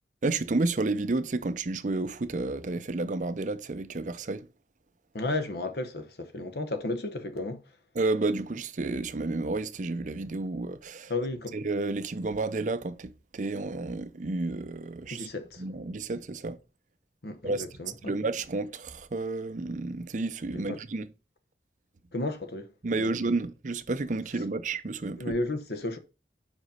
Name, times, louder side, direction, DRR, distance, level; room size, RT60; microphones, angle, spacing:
voice 1, 0.2-4.5 8.0-11.1 11.5-15.3 15.6-16.6 17.4-17.7 18.1-21.1 22.8-25.2, right 3 dB, 45° right, 0.5 m, -31 dB
voice 2, 5.1-7.8 11.1-11.6 15.1-15.6 17.2-18.1 20.5-20.8 22.1-22.7 23.0-23.1 25.2-26.0, left 2 dB, 65° left, 0.9 m, -33 dB
5.2 x 5.0 x 5.5 m
head